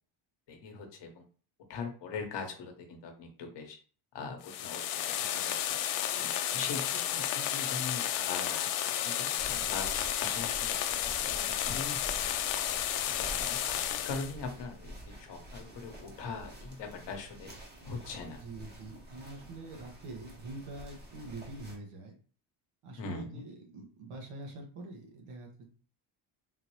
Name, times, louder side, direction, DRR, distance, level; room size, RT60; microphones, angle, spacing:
voice 1, 0.5-1.2 1.7-3.8 4.1-5.5 6.2-11.0 11.3-12.6 13.0-17.5 17.8-18.4 23.0-23.4, left 4 dB, 55° left, 4 dB, 1.0 m, -42 dB
sound 1, 4.4-14.3, left 11 dB, 90° left, 0.6 m, -32 dB
sound 2, 9.4-21.7, right 1 dB, 20° right, 0.8 m, -48 dB
voice 2, 18.3-22.1 22.8-25.7, right 2 dB, 75° right, 1 dB, 1.2 m, -45 dB
3.8 x 2.5 x 3.0 m, 0.41 s
cardioid pair, 135°, 50 cm